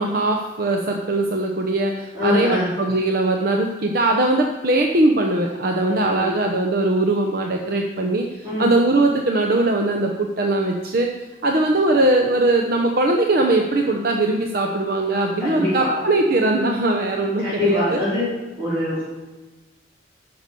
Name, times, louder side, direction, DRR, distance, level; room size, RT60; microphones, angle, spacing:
voice 1, 0.0-11.1 11.4-18.0, right 2 dB, 55° right, 2 dB, 0.8 m, -20 dB
voice 2, 2.1-2.7 5.8-6.3 8.4-8.7 15.4-16.0 17.4-18.3 18.6-19.0, left 2 dB, 20° right, -13 dB, 4.2 m, -23 dB
10.5 x 6.0 x 6.7 m, 1.2 s
head